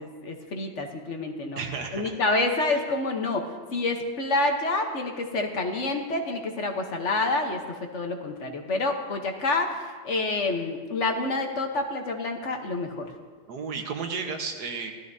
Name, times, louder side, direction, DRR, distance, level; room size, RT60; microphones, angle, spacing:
voice 1, 0.0-1.6 1.9-7.6 7.9-13.1, left 2 dB, 50° left, 4 dB, 1.2 m, -28 dB
voice 2, 1.6-2.2 2.7-2.8 13.5-14.9, right 5 dB, 85° right, 4 dB, 1.7 m, -33 dB
16.5 x 13.0 x 2.7 m, 1.5 s
omnidirectional pair, 1.7 m